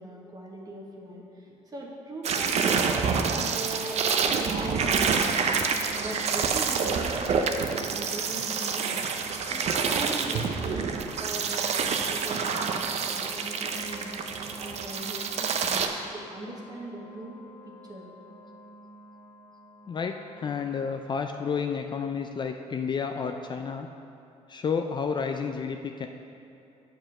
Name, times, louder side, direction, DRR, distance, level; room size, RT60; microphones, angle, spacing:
voice 1, 0.0-5.6 6.0-9.1 9.4-18.1, right 1 dB, 30° right, -2 dB, 1.1 m, -41 dB
sound 1, 2.2-15.9, right 5 dB, 55° right, 0.6 m, -27 dB
sound 2, 4.2-20.9, right 2 dB, 10° left, 1.7 m, -46 dB
voice 2, 19.9-23.9 24.5-26.1, left 6 dB, 35° left, 5 dB, 0.4 m, -31 dB
7.8 x 4.9 x 5.9 m, 2.7 s
cardioid pair, 100°, 13 cm